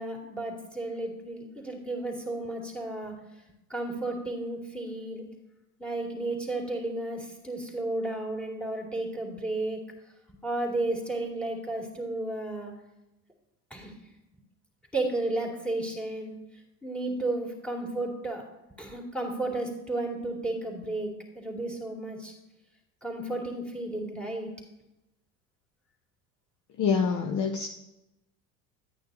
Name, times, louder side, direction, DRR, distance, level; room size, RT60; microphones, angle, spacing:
voice 1, 0.0-3.1 3.7-5.2 5.8-9.8 10.3-12.7 13.7-13.9 14.9-16.3 16.8-18.4 18.8-21.1 21.3-22.3 23.0-24.5, right 2 dB, ahead, -1 dB, 2.5 m, -33 dB
voice 2, 26.8-27.7, left 6 dB, 40° left, 4 dB, 0.7 m, -26 dB
11.0 x 9.0 x 2.7 m, 0.94 s
hypercardioid pair, 70°, 47 cm